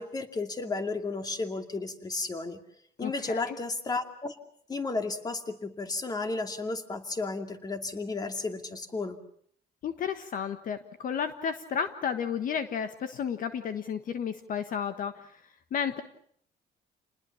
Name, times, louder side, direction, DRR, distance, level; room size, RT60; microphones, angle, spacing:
voice 1, 0.0-2.6 3.0-4.4 4.7-9.2, left 3 dB, 25° left, 7 dB, 2.5 m, -33 dB
voice 2, 3.0-3.6 9.8-15.4 15.7-16.0, left 7 dB, 55° left, 9 dB, 1.5 m, -32 dB
29.0 x 20.0 x 7.2 m, 0.64 s
cardioid pair, 110°, 17 cm